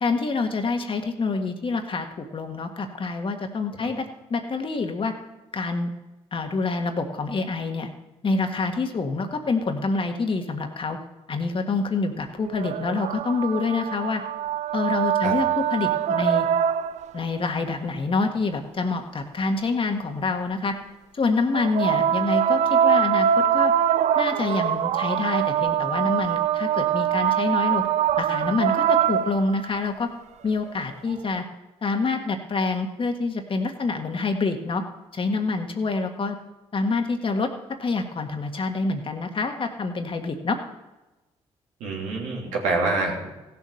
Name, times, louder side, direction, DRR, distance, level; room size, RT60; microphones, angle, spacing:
voice 1, 0.0-5.1 5.5-5.9 6.3-7.9 8.2-11.0 11.3-14.2 14.7-16.5 17.1-20.7 21.1-23.7 24.2-27.8 28.2-30.1 30.4-31.4 31.8-34.8 35.1-36.4 36.7-37.5 37.8-40.6, left 3 dB, 45° left, 5 dB, 1.7 m, -26 dB
sound 1, 12.4-17.2 21.5-29.8 31.1-31.2, right 9 dB, 65° right, 0.4 m, -23 dB
voice 2, 41.8-43.3, right 3 dB, 85° right, -2 dB, 3.0 m, -26 dB
15.5 x 7.2 x 6.4 m, 1.1 s
supercardioid pair, 60°, 13 cm